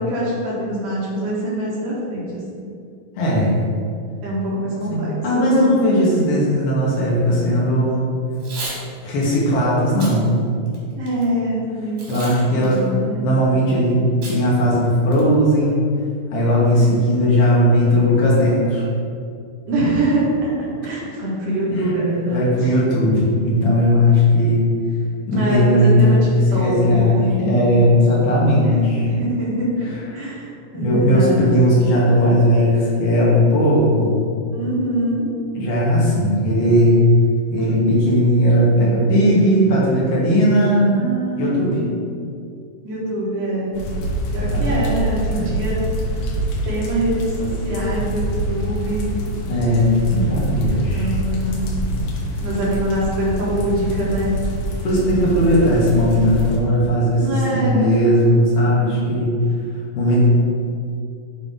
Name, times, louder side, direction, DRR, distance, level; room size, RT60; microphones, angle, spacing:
voice 1, 0.0-2.5 4.2-5.8 11.0-12.3 12.5-13.3 19.7-22.7 25.3-27.5 28.6-29.9 30.1-31.5 34.5-35.3 40.9-41.8 42.8-43.8 44.3-45.8 46.6-49.2 50.7-51.7 52.4-54.4 57.1-57.9, right 1 dB, 70° right, -6 dB, 2.8 m, -24 dB
voice 2, 3.2-3.5 4.9-8.1 9.0-10.3 12.1-13.0 13.2-15.8 16.3-18.8 21.7-21.9 22.2-24.6 25.3-29.1 30.1-30.3 30.7-34.2 35.5-37.1 37.5-41.0 41.4-41.8 44.5-44.8 45.3-45.5 49.5-51.1 54.8-57.3 57.5-59.4 60.0-60.3, equal, 70° left, -5 dB, 2.6 m, -17 dB
Packing tape duct tape / Tearing, 8.3-8.8 9.2-9.4 9.9-10.1 10.7-11.2 12.0-12.4 12.6-12.7 14.2-14.4 14.7-14.8 15.1-15.5, right 3 dB, 85° right, 3.5 m, -33 dB
sound 1, 43.7-56.6, equal, 85° left, 2.7 m, -25 dB
7.3 x 2.9 x 5.3 m, 2.4 s
omnidirectional pair, 4.0 m